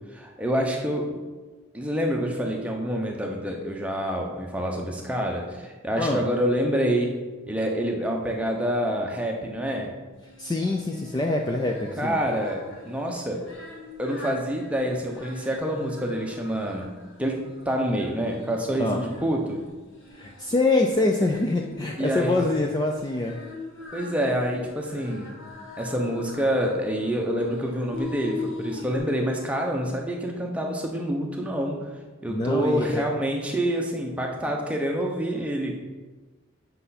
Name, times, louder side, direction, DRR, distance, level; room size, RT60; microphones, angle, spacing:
voice 1, 0.1-1.1 1.7-7.1 7.5-9.9 12.0-13.4 14.0-16.9 17.2-17.4 17.7-19.6 22.0-22.4 23.9-25.3 25.8-31.9 32.2-35.7, equal, 5° right, 0 dB, 0.8 m, -27 dB
Singing, 10.2-29.0, left 3 dB, 60° left, 1.5 m, -42 dB
voice 2, 10.4-12.2 18.8-19.0 20.2-23.4 32.3-33.0, left 2 dB, 20° left, 1 dB, 0.4 m, -25 dB
8.1 x 5.5 x 4.1 m, 1.3 s
head